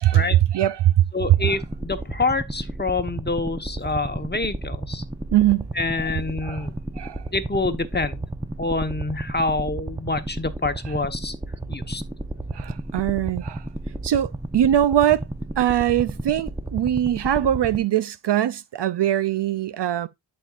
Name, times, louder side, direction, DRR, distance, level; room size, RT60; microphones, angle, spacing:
voice 1, 0.0-1.1 1.4-1.6 5.3-5.7 6.4-6.7 7.0-7.2 12.5-13.6 14.0-15.3 15.6-20.1, right 12 dB, 60° right, 0.5 m, -21 dB
voice 2, 1.1-5.0 5.7-6.7 7.3-8.2 8.6-11.3 11.7-12.0, left 3 dB, 20° left, 1.1 m, -26 dB
sound 1, 1.2-17.8, right 2 dB, 10° right, 0.8 m, -33 dB
11.5 x 4.4 x 2.4 m
cardioid pair, 60°, 49 cm